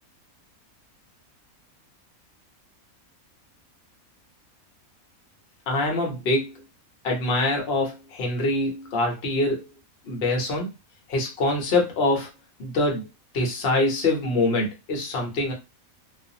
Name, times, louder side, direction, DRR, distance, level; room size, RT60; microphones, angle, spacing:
voice 1, 5.7-6.5 7.0-9.6 10.0-10.7 11.1-12.3 12.6-13.1 13.3-15.5, left 2 dB, 50° left, 1 dB, 0.9 m, -24 dB
2.5 x 2.3 x 2.7 m, 0.25 s
omnidirectional pair, 1.5 m